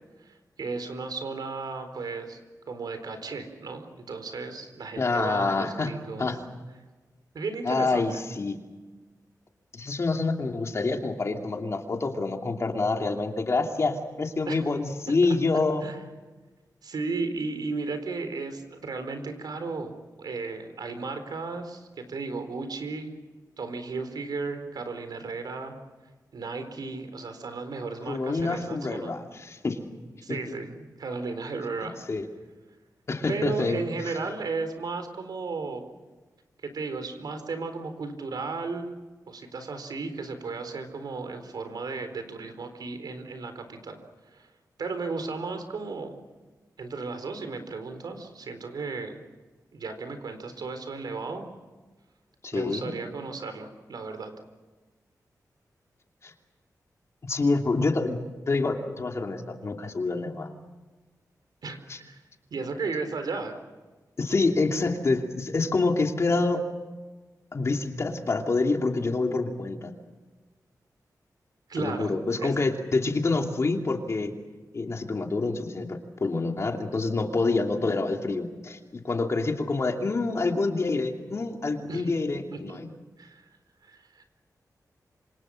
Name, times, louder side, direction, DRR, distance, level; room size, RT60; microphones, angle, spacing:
voice 1, 0.2-2.4 2.7-6.3 7.3-8.1 14.5-14.6 15.8-16.0 16.8-23.1 23.6-25.8 26.3-29.1 30.2-32.0 33.3-35.8 36.6-38.9 39.3-44.0 44.3-44.5 44.8-46.1 46.8-49.2 49.7-51.5 52.5-54.3 61.6-62.2 62.5-63.6 71.7-72.6 81.9-82.2 82.5-82.8 83.2-83.4 83.8-84.3, right 4 dB, 80° right, 8 dB, 4.1 m, -34 dB
voice 2, 5.0-5.9 6.2-6.4 7.6-8.6 9.7-15.9 28.1-29.8 32.1-32.3 33.1-33.8 34.1-34.2 52.4-53.0 56.2-56.3 57.2-58.2 58.5-60.5 61.9-62.0 64.2-66.6 67.5-69.9 71.8-74.3 74.7-82.9, left 3 dB, 45° left, 3 dB, 2.7 m, -27 dB
27.5 x 26.0 x 6.5 m, 1.3 s
wide cardioid pair, 145°, 7 cm